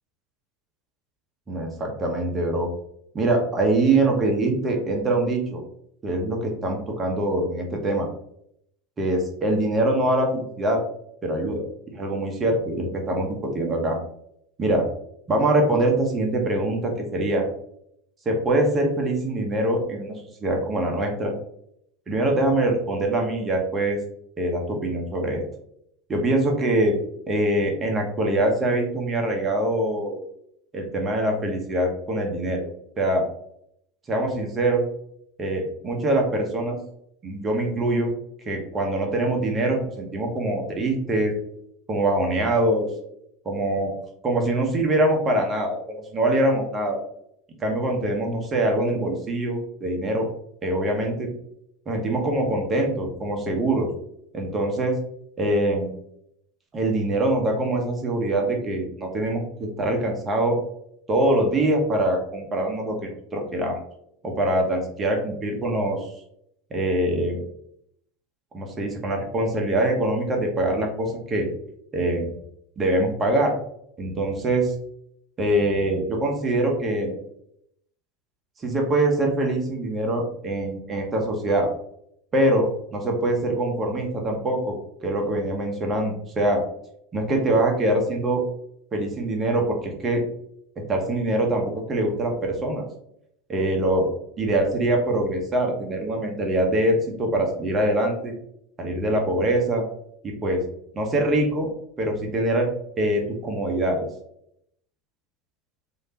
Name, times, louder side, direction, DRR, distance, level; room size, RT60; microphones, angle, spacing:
voice 1, 1.5-2.7 3.1-5.6 6.0-8.1 9.0-10.8 11.2-11.7 11.9-14.0 14.6-14.8 15.3-17.4 18.2-20.1 20.4-21.3 22.1-24.0 24.4-25.4 26.1-27.0 27.3-30.2 30.7-32.7 33.0-33.3 34.1-34.8 35.4-36.8 37.2-38.1 38.4-41.3 41.9-42.9 43.4-43.9 44.2-47.0 47.6-50.3 50.6-51.3 51.9-53.9 54.3-55.0 55.4-55.9 56.7-60.6 61.1-63.8 64.2-66.1 66.7-67.4 68.5-71.5 71.9-72.3 72.8-73.5 74.0-74.7 75.4-77.2 78.6-81.7 82.3-84.8 85.0-86.6 87.1-88.4 88.9-90.2 90.8-92.8 93.5-94.1 94.4-98.3 98.8-99.8 100.2-100.6 100.9-101.7 102.0-102.7 103.0-104.1, right 1 dB, 30° right, 2 dB, 1.1 m, -23 dB
3.3 x 2.8 x 2.9 m, 0.72 s
hypercardioid pair, 80°, 0 cm